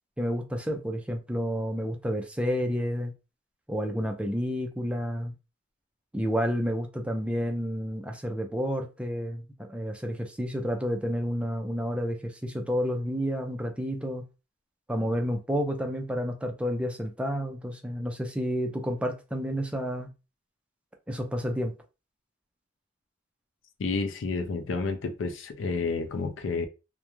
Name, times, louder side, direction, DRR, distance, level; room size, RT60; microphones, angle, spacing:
voice 1, 0.2-3.1 3.7-5.3 6.1-9.4 9.7-14.2 14.9-20.1 21.1-21.7, equal, 5° right, 0.4 m, -30 dB
voice 2, 23.8-26.7, left 4 dB, 80° left, 0.4 m, -30 dB
2.3 x 2.1 x 2.9 m
head